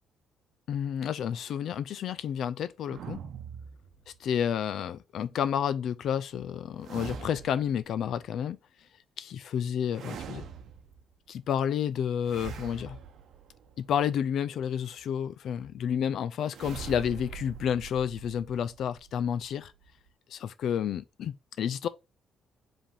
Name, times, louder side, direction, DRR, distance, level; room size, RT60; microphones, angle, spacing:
voice 1, 0.7-3.2 4.2-8.6 9.2-10.4 11.3-13.0 13.8-19.7 20.3-21.9, left 8 dB, 55° left, 0.4 m, -30 dB
sound 1, 2.9-4.4 6.8-7.9 9.9-11.1 12.2-14.1 16.5-20.1, right 7 dB, 55° right, 0.8 m, -43 dB
5.0 x 3.4 x 5.5 m
cardioid pair, 155°, 0 cm